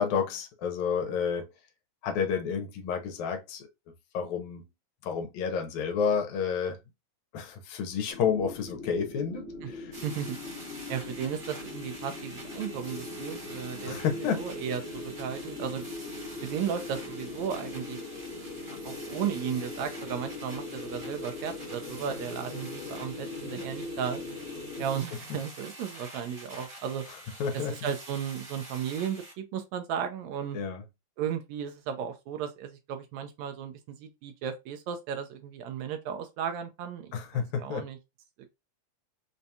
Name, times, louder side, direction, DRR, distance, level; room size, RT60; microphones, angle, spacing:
voice 1, 0.0-1.5 2.0-3.7 4.1-4.6 5.0-6.8 7.3-9.9 13.9-14.5 27.4-27.7 30.5-30.8 37.1-37.9, left 6 dB, 80° left, 2.1 m, -30 dB
sound 1, 8.1-25.0, left 3 dB, 65° left, 2.1 m, -40 dB
sound 2, 9.9-29.3, right 1 dB, 35° right, 0.8 m, -47 dB
voice 2, 10.0-10.6 10.9-15.9 16.4-18.0 18.4-18.5 18.8-24.2 24.8-27.0 27.7-30.6 31.2-38.0 38.4-38.5, right 8 dB, 80° right, 1.9 m, -35 dB
5.2 x 2.3 x 2.7 m
omnidirectional pair, 3.3 m